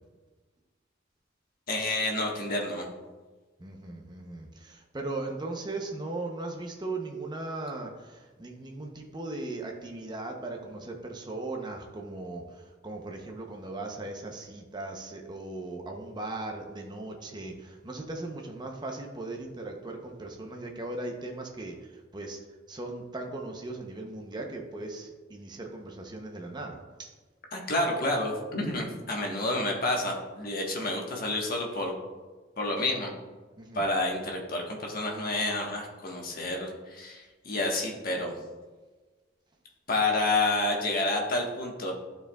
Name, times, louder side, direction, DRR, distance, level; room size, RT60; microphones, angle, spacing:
voice 1, 1.7-2.9 27.5-31.9 32.6-33.1 33.7-38.4 39.9-41.9, left 2 dB, 50° left, 0 dB, 1.2 m, -29 dB
voice 2, 3.6-22.4 22.7-27.1 33.6-33.9, right 2 dB, 20° right, 2 dB, 0.6 m, -38 dB
11.5 x 4.6 x 2.3 m, 1.3 s
head